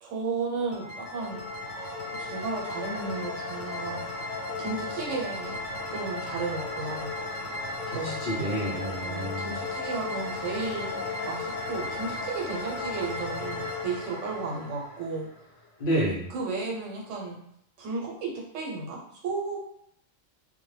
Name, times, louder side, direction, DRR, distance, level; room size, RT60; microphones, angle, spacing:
voice 1, 0.0-4.0 4.6-5.6 5.9-7.1 7.9-8.3 9.0-15.3 16.3-17.4 17.8-19.6, right 4 dB, 80° right, -1 dB, 1.0 m, -34 dB
sound 1, 0.7-15.5, left 2 dB, 75° left, 1.0 m, -35 dB
voice 2, 7.9-9.5 15.8-16.3, right 1 dB, 50° left, -5 dB, 0.7 m, -29 dB
2.2 x 2.1 x 3.1 m, 0.70 s
omnidirectional pair, 1.3 m